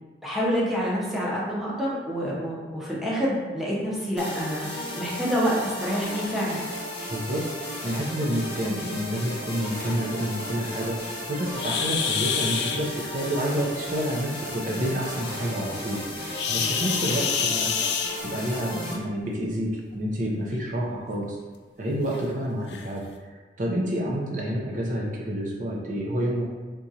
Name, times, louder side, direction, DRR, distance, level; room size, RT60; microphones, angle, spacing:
voice 1, 0.2-6.6, equal, ahead, -6 dB, 0.6 m, -27 dB
sound 1, 4.2-18.9, left 1 dB, 30° left, 0.8 m, -35 dB
voice 2, 7.1-17.9 18.2-21.4 21.8-26.4, equal, 45° right, -3 dB, 0.5 m, -29 dB
sound 2, 11.6-12.8 16.3-18.6 19.8-20.0 20.5-20.6 21.2-21.3 22.1-22.2 22.7-22.9, left 6 dB, 70° left, 0.4 m, -27 dB
3.6 x 2.9 x 2.7 m, 1.4 s
head